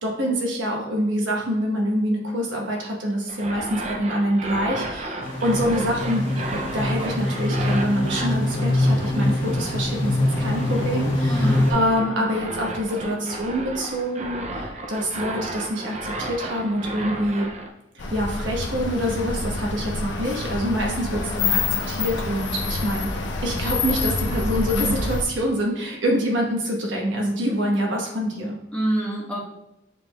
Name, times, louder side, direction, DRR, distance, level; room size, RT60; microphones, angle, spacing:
voice 1, 0.0-6.2 6.7-17.5 17.9-23.1 23.4-28.6, equal, 85° right, -1 dB, 1.1 m, -25 dB
sound 1, 3.3-17.7, right 2 dB, 35° right, 0.4 m, -34 dB
sound 2, 5.2-11.7, left 1 dB, 45° left, 1.6 m, -24 dB
voice 2, 11.3-12.4 12.9-13.3 28.7-29.4, right 1 dB, 5° left, -7 dB, 1.2 m, -28 dB
sound 3, 18.0-25.2, left 4 dB, 75° left, 0.5 m, -27 dB
6.5 x 3.6 x 2.3 m, 0.89 s
head